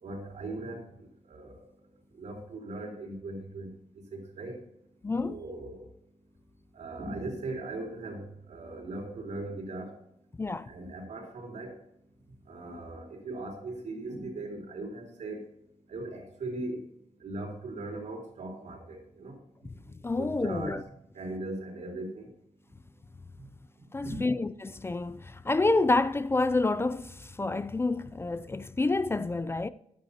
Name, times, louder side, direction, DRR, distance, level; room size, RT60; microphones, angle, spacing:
voice 1, 0.0-1.6 2.2-3.7 4.1-4.6 5.2-5.8 6.7-9.9 10.6-11.7 12.5-15.4 15.9-16.8 17.2-19.4 20.2-20.8 21.1-22.3 24.0-24.4, right 2 dB, 80° right, 4.0 m, -39 dB
voice 2, 5.0-5.4 10.4-10.7 20.0-20.8 23.9-29.7, left 3 dB, 20° left, 0.4 m, -28 dB
14.5 x 11.5 x 2.8 m
wide cardioid pair, 115°, 12 cm